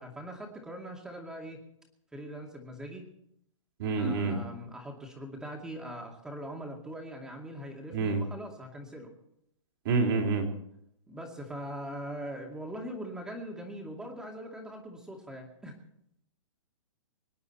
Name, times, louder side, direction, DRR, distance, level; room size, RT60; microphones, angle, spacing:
voice 1, 0.0-1.6 2.1-3.0 4.0-9.1 11.1-15.7, equal, 5° right, 1 dB, 2.4 m, -41 dB
voice 2, 3.8-4.4 7.9-8.2 9.8-10.5, right 4 dB, 45° right, 2 dB, 3.2 m, -27 dB
25.0 x 10.5 x 4.3 m, 0.76 s
hypercardioid pair, 160°, 17 cm